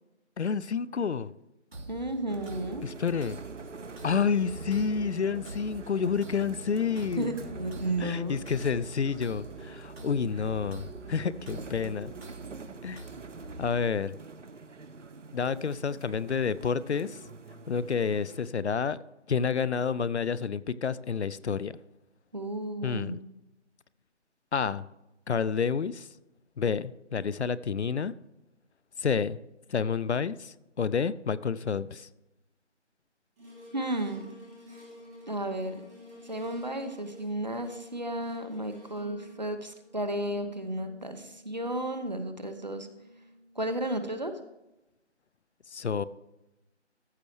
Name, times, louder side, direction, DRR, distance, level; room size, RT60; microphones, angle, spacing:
voice 1, 0.4-1.3 2.8-3.4 4.0-7.3 8.0-12.1 12.8-13.0 13.6-14.1 15.3-17.2 17.7-19.0 19.3-21.7 22.8-23.2 24.5-24.8 25.3-26.1 26.6-28.1 29.0-29.4 29.7-32.1 45.7-46.0, left 6 dB, 70° left, 0.5 m, -29 dB
sound 1, 1.7-13.7, right 2 dB, 55° right, 3.1 m, -46 dB
voice 2, 1.9-2.8 7.0-8.4 22.3-23.2 33.7-34.3 35.3-35.8 36.2-42.9 43.6-44.3, right 1 dB, 40° right, 0.8 m, -33 dB
sound 2, 2.3-18.5, right 4 dB, 90° right, 0.9 m, -45 dB
sound 3, 33.4-43.8 44.3-44.4, left 1 dB, 5° right, 2.0 m, -52 dB
14.0 x 6.5 x 3.1 m
figure-of-eight pair, 175°, 36 cm